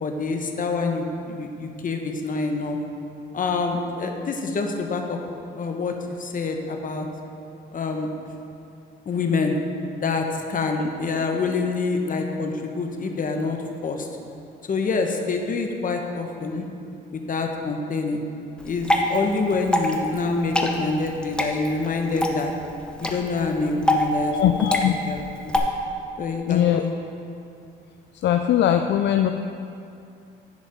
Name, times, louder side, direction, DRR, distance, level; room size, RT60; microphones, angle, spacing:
voice 1, 0.0-2.8 3.3-5.2 5.5-7.1 7.7-8.1 9.1-9.6 10.0-13.6 13.8-14.1 14.7-16.7 17.1-18.2 18.6-22.5 23.0-24.3 25.1-25.6 26.2-26.9, left 4 dB, 45° left, 3 dB, 1.1 m, -26 dB
Water / Drip, 18.6-25.6, left 1 dB, 5° left, 0.9 m, -26 dB
voice 2, 24.3-24.9 26.5-26.8 28.2-29.3, left 10 dB, 65° left, 6 dB, 0.4 m, -20 dB
10.5 x 5.1 x 5.3 m, 2.6 s
cardioid pair, 90°, 20 cm